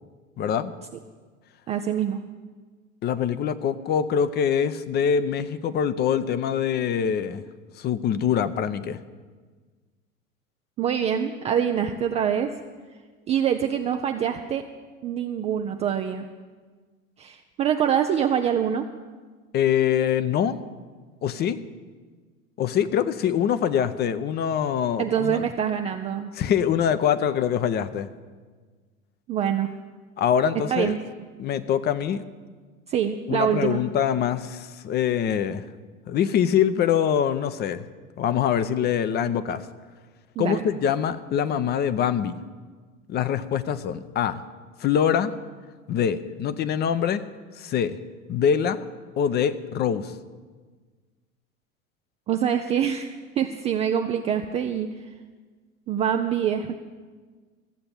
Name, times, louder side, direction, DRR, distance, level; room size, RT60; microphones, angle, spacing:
voice 1, 0.4-0.7 3.0-7.4 7.8-9.0 19.5-20.6 21.2-21.6 22.6-25.4 26.4-28.1 30.2-31.0 31.4-32.2 33.3-35.6 36.1-37.8 38.2-39.6 40.4-42.4 43.1-44.4 44.8-45.3 45.9-47.2 47.6-48.0 48.3-48.8 49.2-50.1, left 8 dB, 25° left, 13 dB, 0.6 m, -24 dB
voice 2, 1.7-2.2 10.8-12.5 13.3-14.6 15.0-16.3 17.2-18.9 25.0-26.3 29.3-29.7 30.7-31.0 32.9-33.8 40.4-40.6 52.3-54.9 55.9-56.7, right 8 dB, 15° right, 5 dB, 0.3 m, -25 dB
14.0 x 7.7 x 8.4 m, 1.4 s
figure-of-eight pair, 85°, 42 cm